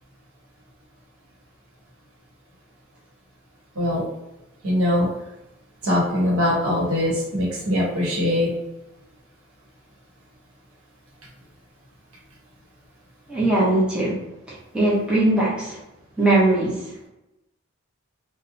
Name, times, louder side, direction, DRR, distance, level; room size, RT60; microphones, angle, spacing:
voice 1, 4.6-5.1 5.8-8.5, left 1 dB, 80° right, -3 dB, 0.9 m, -22 dB
voice 2, 13.3-15.8 16.2-16.9, right 2 dB, 5° right, -8 dB, 0.6 m, -21 dB
2.7 x 2.1 x 2.6 m, 0.93 s
head